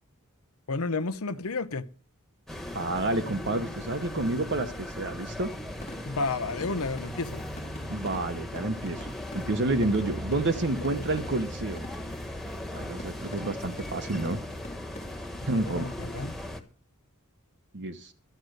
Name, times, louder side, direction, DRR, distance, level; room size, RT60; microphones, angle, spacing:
voice 1, 0.7-1.9 6.0-7.5 15.5-16.3, left 3 dB, 70° left, 0.8 m, -31 dB
sound 1, 2.5-16.6, left 1 dB, ahead, 1.4 m, -38 dB
voice 2, 2.7-5.5 7.9-11.8 12.7-14.4 15.5-16.0 17.7-18.1, right 2 dB, 55° right, 1.0 m, -29 dB
sound 2, 5.7-12.3 13.0-15.2, left 1 dB, 30° left, 1.5 m, -48 dB
12.5 x 9.2 x 6.4 m
head